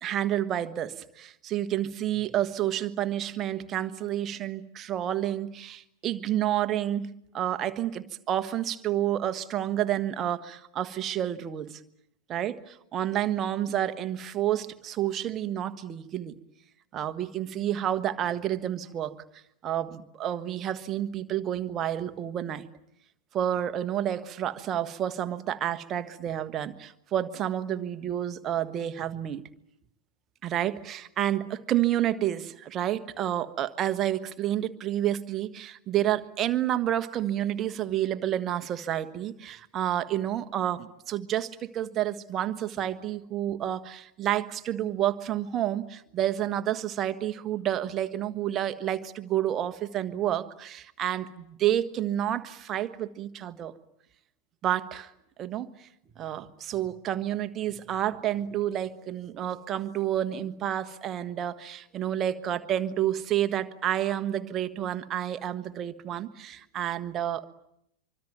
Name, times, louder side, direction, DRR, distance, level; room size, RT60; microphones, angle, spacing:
voice 1, 0.0-11.8 12.3-16.4 16.9-19.2 19.6-22.6 23.3-29.5 30.4-53.7 54.6-55.1 55.4-55.9 56.2-67.5, right 11 dB, 30° right, 10 dB, 1.5 m, -29 dB
25.0 x 25.0 x 9.3 m, 0.77 s
figure-of-eight pair, 90°, 0 cm